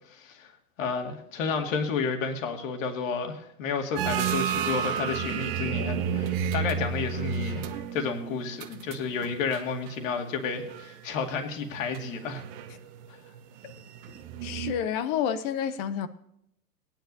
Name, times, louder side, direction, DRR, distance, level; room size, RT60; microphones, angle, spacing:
voice 1, 0.1-0.5 0.8-12.4, left 5 dB, 55° left, 2.3 m, -31 dB
sound 1, 4.0-10.1 10.5-11.1 11.7-14.7, right 7 dB, 35° right, 1.1 m, -32 dB
voice 2, 14.4-16.1, left 9 dB, 25° left, 0.6 m, -29 dB
18.0 x 10.5 x 2.7 m
hypercardioid pair, 125°, 47 cm